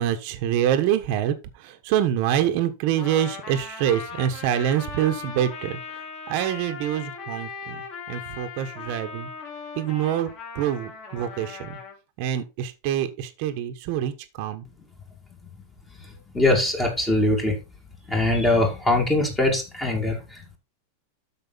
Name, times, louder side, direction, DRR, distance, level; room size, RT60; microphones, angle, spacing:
voice 1, 0.0-1.3 1.6-5.8 6.3-9.3 9.7-11.8 12.2-14.6, right 10 dB, 40° right, 1.3 m, -26 dB
Trumpet, 3.0-12.0, left 5 dB, 30° left, 3.2 m, -38 dB
voice 2, 16.3-17.6 18.1-20.6, left 2 dB, 10° left, 2.1 m, -22 dB
12.5 x 5.2 x 4.1 m
supercardioid pair, 180°, 0 cm